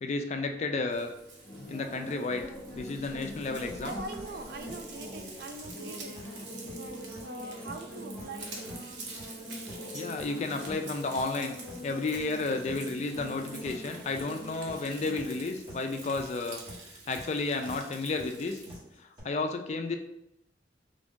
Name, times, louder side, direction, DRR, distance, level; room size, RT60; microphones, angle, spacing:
voice 1, 0.0-1.1 1.7-2.5 2.7-4.0 9.9-11.5 11.8-16.6 17.1-18.6 19.0-20.0, left 3 dB, 40° left, 5 dB, 0.3 m, -32 dB
sound 1, 0.5-18.9, equal, 5° left, 1.0 m, -45 dB
Frying (food), 0.9-18.7, right 3 dB, 85° right, 0.8 m, -48 dB
sound 2, 3.2-19.2, equal, 25° right, 1.4 m, -48 dB
voice 2, 3.8-8.8 9.1-9.9 10.3-10.4, right 2 dB, 55° right, 7 dB, 0.4 m, -44 dB
3.4 x 2.6 x 3.6 m, 0.85 s
head